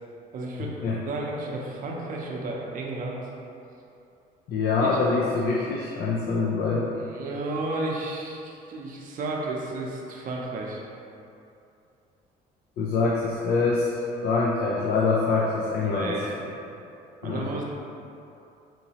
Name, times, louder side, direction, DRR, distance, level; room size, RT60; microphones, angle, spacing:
voice 1, 0.3-0.7 1.0-3.2 4.8-5.0 6.9-10.8 15.8-16.5 17.2-17.6, right 2 dB, 55° right, -2 dB, 0.6 m, -32 dB
voice 2, 4.5-6.9 12.8-13.9 14.1-16.3 17.2-17.5, left 4 dB, 65° left, -4 dB, 0.4 m, -25 dB
3.8 x 2.9 x 2.8 m, 2.7 s
cardioid pair, 110°, 17 cm